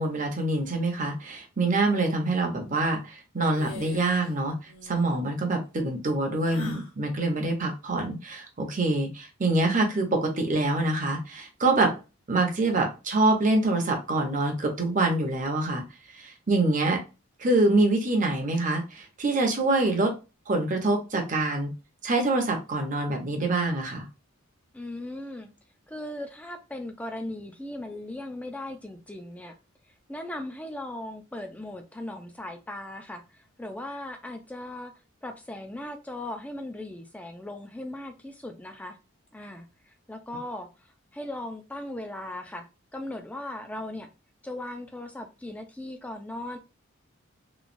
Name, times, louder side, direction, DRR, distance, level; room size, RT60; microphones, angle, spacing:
voice 1, 0.0-4.5 4.8-11.9 12.3-15.8 16.1-17.0 17.4-20.1 20.5-21.7 22.0-24.1, right 2 dB, 35° right, 3 dB, 0.7 m, -25 dB
sound 1, 3.5-4.3 4.6-5.2 6.4-6.9, left 3 dB, 65° left, 0.9 m, -43 dB
voice 2, 24.7-25.5 25.9-29.5 30.1-34.9 35.2-39.0 39.3-42.7 42.9-44.1 44.4-46.6, left 1 dB, 5° left, 4 dB, 0.3 m, -38 dB
3.1 x 2.2 x 2.5 m, 0.29 s
head